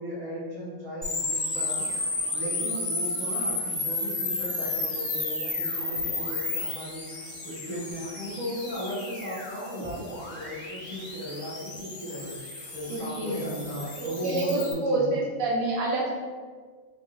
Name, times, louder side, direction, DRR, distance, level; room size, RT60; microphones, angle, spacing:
voice 1, 0.0-1.9 2.3-7.1 7.4-12.3 12.7-15.1, equal, 25° right, -9 dB, 1.3 m, -36 dB
sound 1, 1.0-14.7, left 2 dB, 40° left, 0.8 m, -33 dB
voice 2, 12.9-13.7 14.0-16.1, right 2 dB, 85° right, -2 dB, 1.1 m, -28 dB
4.1 x 3.7 x 2.5 m, 1.5 s
omnidirectional pair, 1.4 m